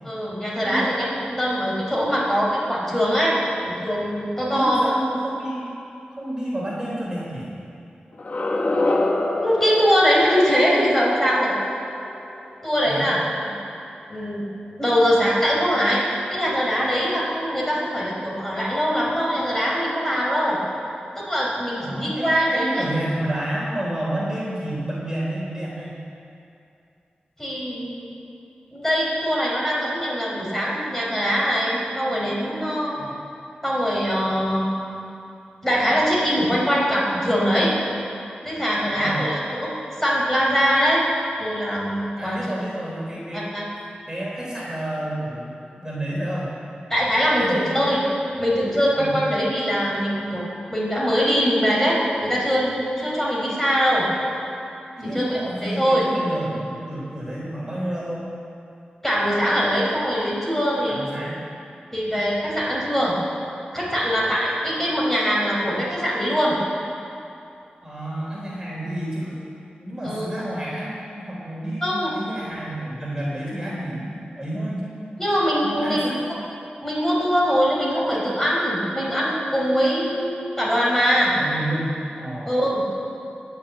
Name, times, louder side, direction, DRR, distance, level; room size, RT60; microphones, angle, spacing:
voice 1, 0.0-3.4 3.6-4.9 9.4-11.6 12.6-13.2 13.5-13.6 14.1-14.4 14.8-16.0 16.3-20.6 21.2-22.9 27.4-28.1 28.7-33.0 33.6-34.7 35.6-37.7 38.4-39.7 40.0-41.0 41.4-42.4 43.3-43.6 46.9-48.0 48.4-54.1 55.0-56.1 59.0-61.0 61.9-63.2 63.7-66.6 70.0-70.3 71.8-72.1 75.2-76.1 76.8-81.3 82.4-82.8, equal, 10° left, -5 dB, 5.0 m, -22 dB
voice 2, 4.5-5.7 6.1-7.5 12.9-13.1 21.8-25.9 33.0-33.1 38.9-39.2 42.2-43.5 44.1-46.5 47.4-47.7 49.0-49.2 55.0-58.2 60.9-61.4 67.8-69.4 69.8-74.9 75.6-76.3 81.3-81.9 82.2-82.5, right 1 dB, 20° right, -6 dB, 3.7 m, -30 dB
sound 1, 8.1-13.1, left 2 dB, 55° left, 1.5 m, -27 dB
21.0 x 7.0 x 8.8 m, 2.6 s
wide cardioid pair, 85°, 3 cm